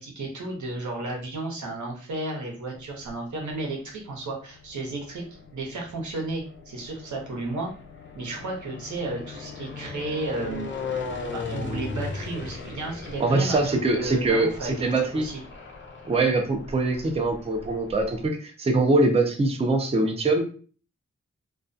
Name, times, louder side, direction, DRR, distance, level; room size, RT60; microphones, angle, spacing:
voice 1, 0.0-5.2 5.5-7.7 8.1-10.7 11.3-15.4, right 2 dB, 85° right, -1 dB, 0.8 m, -33 dB
sound 1, 2.7-3.5 4.3-18.3, left 4 dB, 40° left, 0.6 m, -38 dB
voice 2, 13.2-15.3 16.0-20.4, right 2 dB, 20° right, 4 dB, 0.4 m, -23 dB
2.2 x 2.2 x 2.5 m, 0.40 s
wide cardioid pair, 75°, 29 cm